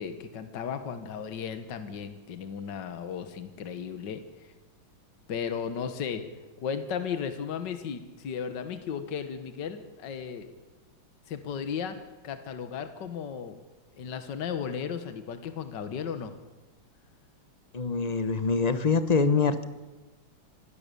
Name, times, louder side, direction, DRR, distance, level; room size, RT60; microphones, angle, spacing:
voice 1, 0.0-4.5 5.3-6.2 6.6-10.5 11.3-12.0 12.2-13.6 14.0-16.3, left 7 dB, 60° left, 9 dB, 1.9 m, -35 dB
voice 2, 17.7-19.6, left 4 dB, 40° left, 11 dB, 0.6 m, -24 dB
26.0 x 18.0 x 6.9 m, 1.1 s
omnidirectional pair, 2.2 m